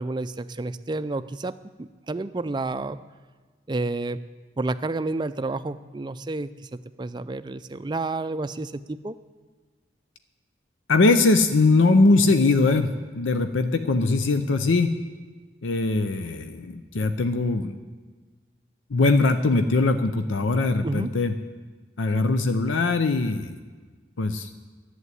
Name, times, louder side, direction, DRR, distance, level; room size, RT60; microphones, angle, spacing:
voice 1, 0.0-3.0 3.7-4.2 4.6-9.1 20.8-21.1, right 2 dB, 25° right, 12 dB, 0.4 m, -30 dB
voice 2, 10.9-14.9 15.6-17.8 18.9-21.3 22.0-23.6 24.2-24.5, left 3 dB, 90° left, 9 dB, 0.6 m, -21 dB
11.0 x 8.0 x 9.6 m, 1.4 s
head